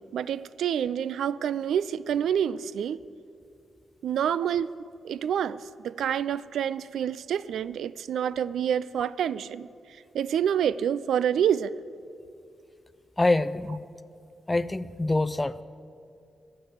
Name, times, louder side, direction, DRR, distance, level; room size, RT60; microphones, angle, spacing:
voice 1, 0.0-3.0 4.0-4.7 5.0-9.7 10.1-11.7, right 9 dB, 85° right, 0.3 m, -27 dB
voice 2, 13.2-13.9 14.5-15.6, left 2 dB, 20° left, 0.5 m, -25 dB
15.0 x 7.3 x 8.0 m
cardioid pair, 65°, 0 cm